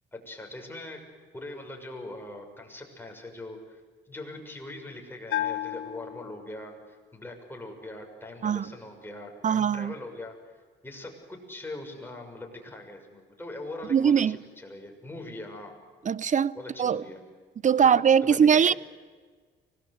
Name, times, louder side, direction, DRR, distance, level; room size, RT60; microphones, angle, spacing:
voice 1, 0.1-1.0 1.3-3.8 4.1-15.7 16.5-17.2 17.8-17.9 18.2-18.8, left 2 dB, 10° left, 6.4 m, -42 dB
Bell, 5.3-6.9, left 12 dB, 90° left, 1.4 m, -33 dB
voice 2, 8.4-8.7 9.4-9.9 13.9-14.4 16.0-17.0 17.6-18.7, right 7 dB, 40° right, 0.7 m, -22 dB
25.0 x 19.5 x 8.1 m
cardioid pair, 90°, 20 cm